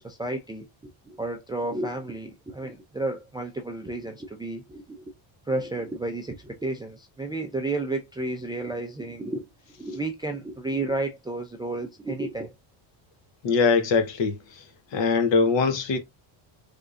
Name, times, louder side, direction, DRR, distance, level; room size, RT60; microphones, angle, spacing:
voice 1, 0.0-5.1 5.5-9.5 9.8-12.5, right 2 dB, 10° right, 0.4 m, -32 dB
voice 2, 13.4-14.6 14.9-16.0, left 5 dB, 60° left, 1.3 m, -22 dB
3.6 x 3.3 x 2.5 m
cardioid pair, 140°, 49 cm